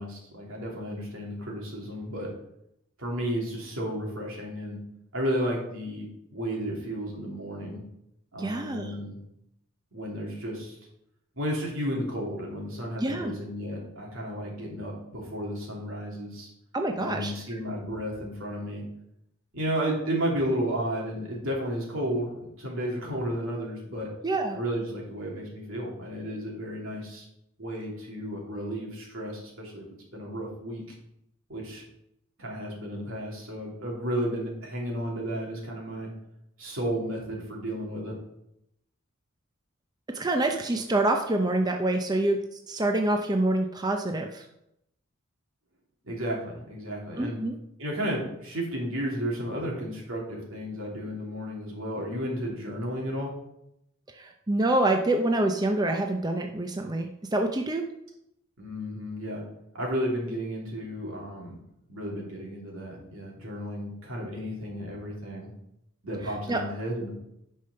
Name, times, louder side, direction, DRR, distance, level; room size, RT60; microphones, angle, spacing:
voice 1, 0.0-2.3 3.0-4.8 5.1-7.8 8.3-9.2 9.9-10.8 11.4-16.5 17.0-18.8 19.5-22.3 22.6-24.1 24.5-27.3 27.6-29.8 30.1-30.8 31.5-31.8 32.4-36.1 36.6-38.1 46.0-47.4 47.8-53.3 58.6-59.4 59.7-61.6 61.9-65.5 66.0-67.1, equal, 75° right, -2 dB, 3.1 m, -33 dB
voice 2, 8.4-9.0 13.0-13.3 16.7-17.3 24.2-24.6 40.1-42.4 42.7-44.5 47.2-47.5 54.1-57.8 66.2-66.6, right 2 dB, 20° right, 3 dB, 0.6 m, -26 dB
9.8 x 5.5 x 5.6 m, 0.81 s
head